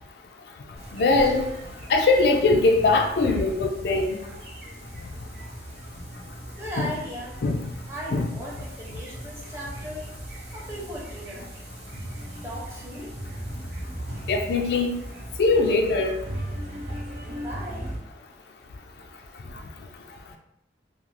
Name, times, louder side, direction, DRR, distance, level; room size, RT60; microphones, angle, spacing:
sound 1, 0.8-18.0, right 1 dB, 60° right, 0.7 m, -38 dB
voice 1, 0.9-1.5 1.9-4.2 7.4-7.6 8.1-8.3 14.3-15.0 15.4-16.2, left 3 dB, 65° left, 3 dB, 0.3 m, -21 dB
voice 2, 6.6-7.4 7.9-10.1 10.5-11.5 12.4-13.1 17.4-17.9, equal, 15° right, -4 dB, 0.6 m, -37 dB
2.4 x 2.3 x 3.1 m, 0.80 s
head